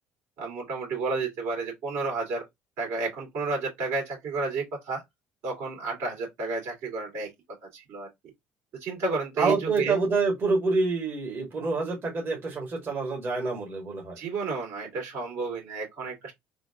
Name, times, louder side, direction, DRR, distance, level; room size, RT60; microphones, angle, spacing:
voice 1, 0.4-2.4 2.8-5.0 5.4-7.3 7.7-8.1 8.8-9.9 14.2-16.3, right 4 dB, 65° right, 2.5 m, -31 dB
voice 2, 9.4-14.2, right 3 dB, 45° right, 2.0 m, -27 dB
3.8 x 2.4 x 3.5 m
supercardioid pair, 85°, 5 cm